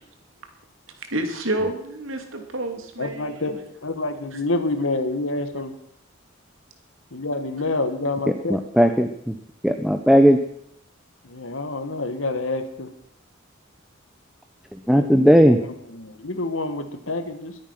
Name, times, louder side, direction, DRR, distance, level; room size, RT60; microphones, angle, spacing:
voice 1, 1.0-3.6 4.3-4.4, right 1 dB, 85° right, 5 dB, 2.6 m, -29 dB
voice 2, 3.0-3.6 3.8-5.7 7.1-8.6 11.2-12.9 14.9-17.5, left 2 dB, 85° left, 8 dB, 1.7 m, -28 dB
voice 3, 8.5-9.4 9.6-10.4 14.9-15.6, equal, ahead, 6 dB, 0.8 m, -16 dB
22.0 x 8.7 x 6.0 m, 0.71 s
head